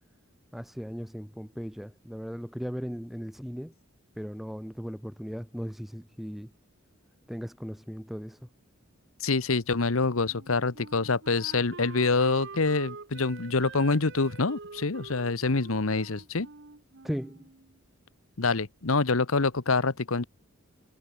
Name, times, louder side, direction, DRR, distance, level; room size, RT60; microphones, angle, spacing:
voice 1, 0.5-3.7 4.1-6.5 7.3-8.4 17.0-17.5, equal, ahead, 1.3 m, -37 dB
voice 2, 9.2-16.5 18.4-20.2, left 3 dB, 80° left, 1.2 m, -26 dB
Wind instrument woodwind instrument, 10.3-17.8, right 4 dB, 55° right, 1.1 m, -46 dB
head